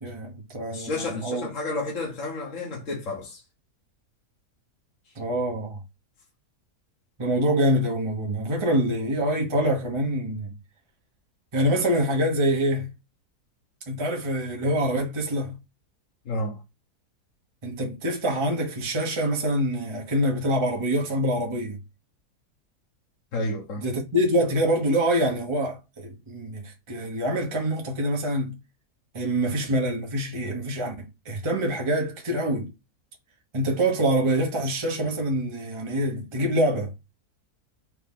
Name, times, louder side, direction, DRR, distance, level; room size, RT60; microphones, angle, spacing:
voice 1, 0.0-1.5 5.2-5.8 7.2-10.5 11.5-12.9 13.9-15.6 17.6-21.8 23.8-28.6 29.1-32.7 33.5-36.9, right 1 dB, 25° right, 0.9 m, -25 dB
voice 2, 0.7-3.4 5.0-5.1 16.2-16.6 23.3-23.9, left 2 dB, 55° left, 1.4 m, -31 dB
4.7 x 2.8 x 3.5 m
omnidirectional pair, 1.7 m